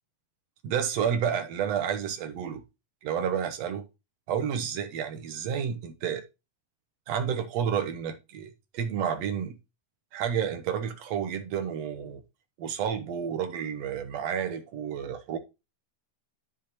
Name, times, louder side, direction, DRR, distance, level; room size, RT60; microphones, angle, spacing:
voice 1, 0.6-2.6 3.0-3.8 4.3-6.2 7.1-9.6 10.1-12.2 12.6-15.4, right 8 dB, 70° right, 1.8 m, -30 dB
10.0 x 6.7 x 3.0 m
omnidirectional pair, 3.8 m